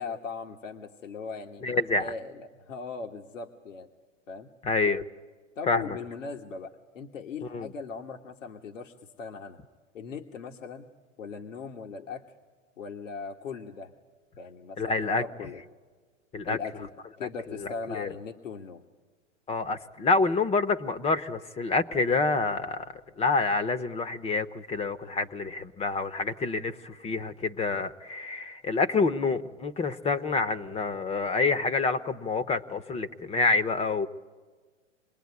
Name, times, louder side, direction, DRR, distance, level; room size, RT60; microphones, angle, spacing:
voice 1, 0.0-1.6 2.0-3.9 4.3-4.5 5.5-9.6 9.9-10.9 11.2-12.2 12.8-13.9 14.4-15.6 16.5-16.9 17.2-18.8, left 5 dB, 80° left, 3 dB, 1.5 m, -39 dB
voice 2, 1.6-2.1 4.6-5.0 5.7-6.0 7.5-7.7 14.8-15.2 16.3-16.6 17.2-17.3 17.5-18.1 19.5-22.9 23.2-34.1, left 3 dB, 15° left, 13 dB, 0.8 m, -27 dB
26.5 x 20.5 x 9.6 m, 1.5 s
hypercardioid pair, 115°, 38 cm